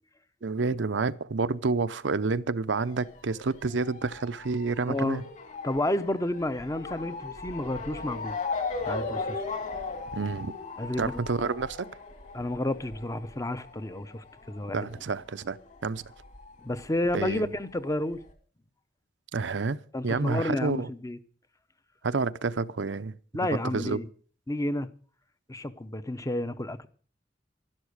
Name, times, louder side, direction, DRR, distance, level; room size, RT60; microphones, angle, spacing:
voice 1, 0.4-5.2 10.1-10.5 11.0-11.9 14.7-15.6 15.8-16.0 17.1-17.5 19.3-19.8 20.0-20.9 22.0-23.2 23.7-24.0, right 4 dB, 75° right, 0.7 m, -29 dB
Motor vehicle (road) / Siren, 2.8-15.9 16.1-17.3 17.9-18.0 18.3-18.4, left 4 dB, 45° left, 2.7 m, -38 dB
voice 2, 4.9-5.2 5.6-8.4 8.8-9.4 10.8-11.2 12.3-14.9 16.6-18.2 19.9-21.2 23.3-24.1 24.5-24.9 25.5-26.9, left 1 dB, 20° left, 0.8 m, -31 dB
12.0 x 12.0 x 6.4 m
head